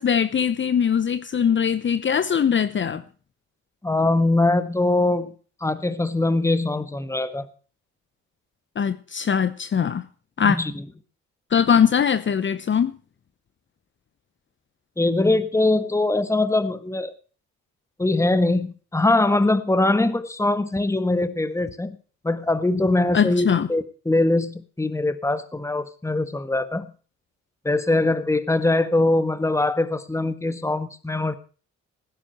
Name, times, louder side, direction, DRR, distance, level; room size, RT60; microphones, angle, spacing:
voice 1, 0.0-3.0 8.8-10.0 10.4-10.6 11.5-12.9 23.1-23.7, left 7 dB, 40° left, 0.9 m, -21 dB
voice 2, 3.8-5.3 5.6-7.5 10.4-10.8 15.0-17.1 18.0-22.0 22.2-26.9 27.6-31.3, left 2 dB, 10° left, 1.5 m, -22 dB
17.5 x 10.5 x 4.4 m
cardioid pair, 90°, 30 cm